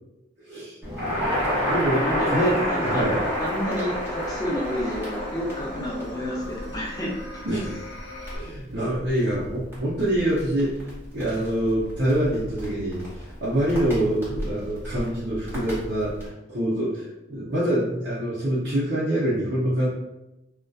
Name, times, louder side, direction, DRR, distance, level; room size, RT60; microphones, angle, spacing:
voice 1, 0.4-0.8 1.3-3.2 7.4-7.8 8.3-13.0 13.4-16.1 16.5-19.9, right 1 dB, 70° right, -9 dB, 0.6 m, -25 dB
Crackle, 0.8-16.3, equal, 10° right, 0.8 m, -31 dB
sound 1, 1.3-8.4, left 2 dB, 80° left, 0.6 m, -39 dB
voice 2, 1.9-3.1 3.4-7.4, equal, 20° left, -3 dB, 0.5 m, -29 dB
2.6 x 2.2 x 2.2 m, 0.94 s
head